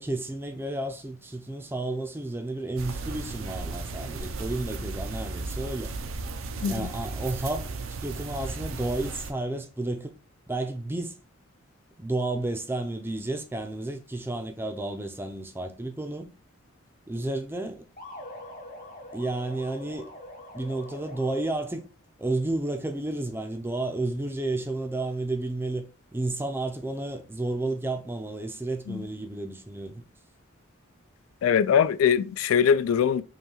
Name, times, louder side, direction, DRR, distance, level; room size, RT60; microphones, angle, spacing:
voice 1, 0.0-5.9 6.7-10.1 10.5-11.2 12.0-16.3 17.1-17.8 19.1-20.1 20.5-21.8 22.2-25.8 26.1-30.0, right 2 dB, 10° right, 0.4 m, -31 dB
sound 1, 2.8-9.3, right 3 dB, 80° right, 0.5 m, -35 dB
sound 2, 18.0-21.8, left 1 dB, 45° left, 1.1 m, -44 dB
voice 2, 31.4-33.2, left 7 dB, 85° left, 0.3 m, -22 dB
5.4 x 2.3 x 3.0 m
head